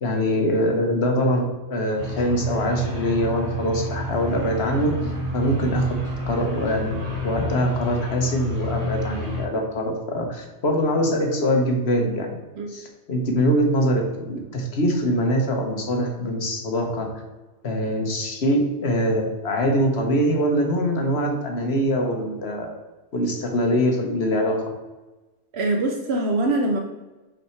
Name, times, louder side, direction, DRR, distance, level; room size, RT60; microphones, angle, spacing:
voice 1, 0.0-5.0 5.3-6.0 6.3-7.0 7.2-12.4 12.7-17.1 17.6-22.7 23.1-24.6, equal, 65° left, 2 dB, 1.4 m, -23 dB
sound 1, 2.0-9.4, left 1 dB, 35° left, 1.7 m, -29 dB
voice 2, 25.5-26.8, right 2 dB, 70° right, 2 dB, 1.0 m, -23 dB
5.6 x 4.2 x 4.5 m, 1.1 s
omnidirectional pair, 1.1 m